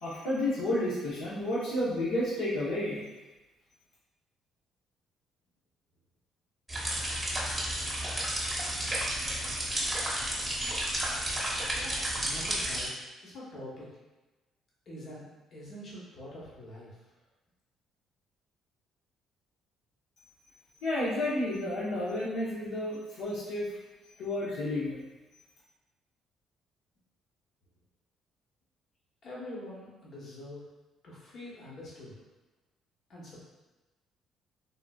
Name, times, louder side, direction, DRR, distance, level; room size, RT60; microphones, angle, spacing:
voice 1, 0.0-3.0 20.8-23.8 24.2-25.0, left 1 dB, 85° left, -8 dB, 0.8 m, -31 dB
sound 1, 6.7-12.9, right 1 dB, 5° right, 0.8 m, -32 dB
voice 2, 11.7-12.9 13.2-13.9 14.9-16.9 29.2-30.6 31.0-32.1 33.1-33.4, left 1 dB, 50° left, -5 dB, 1.0 m, -45 dB
3.6 x 2.6 x 2.3 m, 1.1 s
cardioid pair, 110°, 0 cm